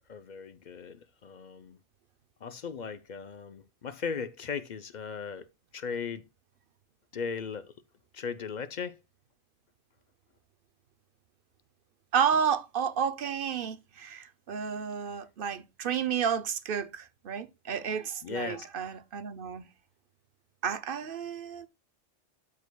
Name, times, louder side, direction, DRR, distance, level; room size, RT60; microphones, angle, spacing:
voice 1, 0.0-1.8 2.4-5.5 5.7-6.2 7.1-7.7 8.1-9.0 18.2-18.7, left 6 dB, 50° left, 0.5 m, -37 dB
voice 2, 12.1-19.7 20.6-21.7, right 7 dB, 55° right, 0.7 m, -31 dB
12.5 x 4.7 x 2.2 m
omnidirectional pair, 1.3 m